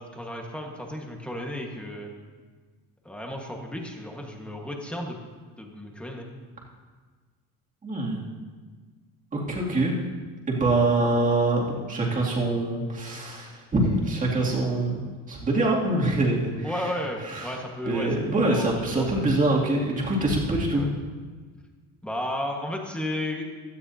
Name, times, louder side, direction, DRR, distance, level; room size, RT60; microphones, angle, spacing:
voice 1, 0.0-2.1 3.0-5.2 5.6-6.3 16.6-19.2 20.7-20.9 22.0-23.5, left 1 dB, 5° left, 0 dB, 1.5 m, -33 dB
voice 2, 7.8-8.2 9.3-9.9 10.5-16.9 17.2-17.6 17.9-20.9, right 2 dB, 25° right, -4 dB, 2.6 m, -25 dB
16.5 x 13.0 x 2.8 m, 1.5 s
cardioid pair, 155°, 33 cm